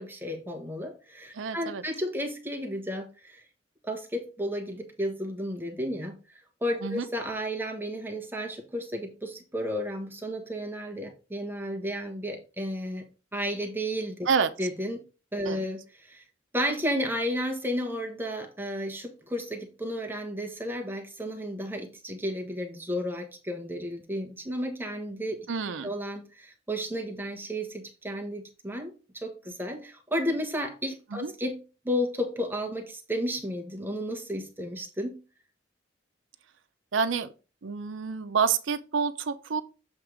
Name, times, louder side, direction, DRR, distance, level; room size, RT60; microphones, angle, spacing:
voice 1, 0.0-3.4 3.8-13.0 13.3-14.3 14.6-15.0 15.3-16.2 16.5-25.5 25.8-35.1, equal, 10° right, 1.3 m, -33 dB
voice 2, 1.3-1.8 6.8-7.1 14.3-14.5 15.5-15.7 25.5-25.9 31.1-31.3 36.9-37.3 37.6-39.6, right 6 dB, 85° right, 0.6 m, -28 dB
7.5 x 3.6 x 4.9 m
head